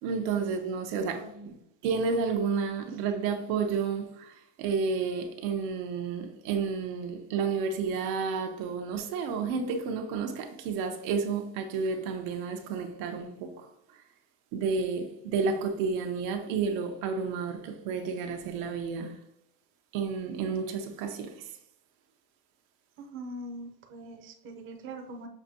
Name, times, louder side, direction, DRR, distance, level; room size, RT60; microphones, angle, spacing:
voice 1, 0.0-1.6 1.8-13.7 14.5-19.2 19.9-21.5, right 5 dB, 75° right, 0.9 m, -31 dB
voice 2, 1.1-1.6 23.0-25.3, right 1 dB, 25° right, 0.6 m, -42 dB
6.6 x 2.6 x 2.7 m
cardioid pair, 145°, 47 cm